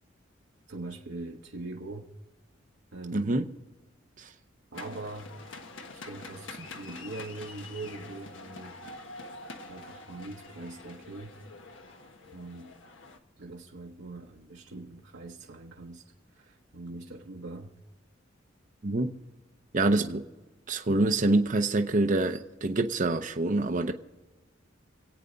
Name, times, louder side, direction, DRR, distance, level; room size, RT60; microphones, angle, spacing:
voice 1, 0.7-2.1 2.9-3.4 4.7-5.3 6.0-8.8 9.7-11.3 12.3-12.7 13.4-16.0 16.4-17.7 19.9-20.2, right 2 dB, 65° right, 1.0 m, -42 dB
voice 2, 3.1-3.5 4.2-4.3 18.8-19.2 19.7-20.2 20.7-23.9, right 2 dB, 40° right, 0.7 m, -26 dB
sound 1, 4.7-13.2, left 3 dB, 80° left, 1.4 m, -46 dB
26.5 x 8.9 x 3.9 m
head